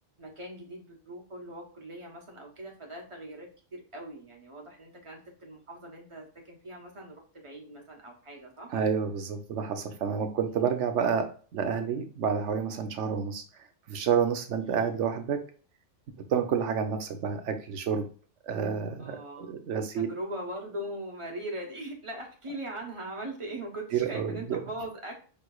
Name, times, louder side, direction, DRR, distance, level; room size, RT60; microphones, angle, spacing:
voice 1, 0.2-8.7 10.6-10.7 14.6-14.9 19.0-25.2, right 1 dB, 25° right, 0 dB, 1.2 m, -41 dB
voice 2, 8.7-11.3 11.5-13.4 13.9-15.4 16.3-18.1 18.4-20.1 23.9-24.6, right 7 dB, 70° right, 6 dB, 1.0 m, -29 dB
5.2 x 3.2 x 2.3 m, 0.40 s
omnidirectional pair, 1.3 m